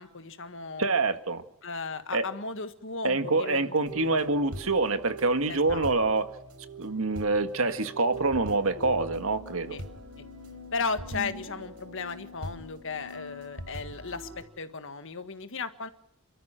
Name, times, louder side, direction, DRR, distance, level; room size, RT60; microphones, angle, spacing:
voice 1, 0.0-0.9 1.6-4.3 5.5-5.9 9.7-9.8 10.2-10.3 10.7-15.9, left 4 dB, 60° left, 10 dB, 1.7 m, -36 dB
voice 2, 0.8-1.4 2.1-2.2 3.0-6.3 6.8-9.8, right 3 dB, 65° right, 9 dB, 1.8 m, -26 dB
sound 1, 3.9-14.4, right 1 dB, 90° right, 4.1 m, -42 dB
28.5 x 13.5 x 9.1 m, 0.76 s
head